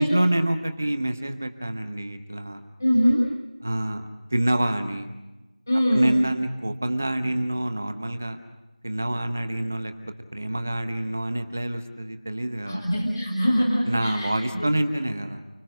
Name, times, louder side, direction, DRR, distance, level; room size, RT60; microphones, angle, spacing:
voice 1, 0.0-2.6 3.6-4.0 4.3-5.1 5.9-8.4 8.8-12.8 13.5-15.4, right 1 dB, 20° right, 9 dB, 0.9 m, -27 dB
voice 2, 2.8-3.2 5.7-6.2 12.7-14.3, equal, 25° left, -3 dB, 2.8 m, -22 dB
29.5 x 20.0 x 6.5 m, 1.1 s
figure-of-eight pair, 175°, 4 cm